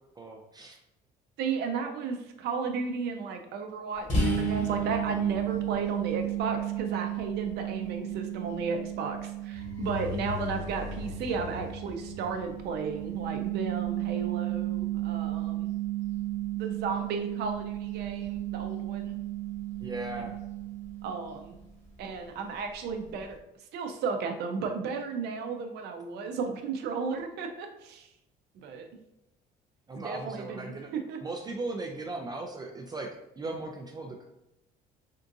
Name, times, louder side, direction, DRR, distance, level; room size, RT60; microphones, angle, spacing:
voice 1, 0.2-0.8 19.8-20.4 29.9-30.9 31.2-34.2, right 2 dB, 25° right, 2 dB, 0.4 m, -37 dB
voice 2, 1.4-15.7 16.6-19.2 21.0-21.6 22.0-23.4 23.7-28.1 28.6-28.9 30.0-31.2, right 5 dB, 75° right, 5 dB, 0.6 m, -34 dB
sound 1, 4.1-21.6, right 9 dB, 45° left, 1.3 m, -33 dB
sound 2, 9.5-13.4, left 4 dB, 20° left, 1.0 m, -40 dB
3.6 x 2.5 x 2.6 m, 0.87 s
cardioid pair, 110°, 17 cm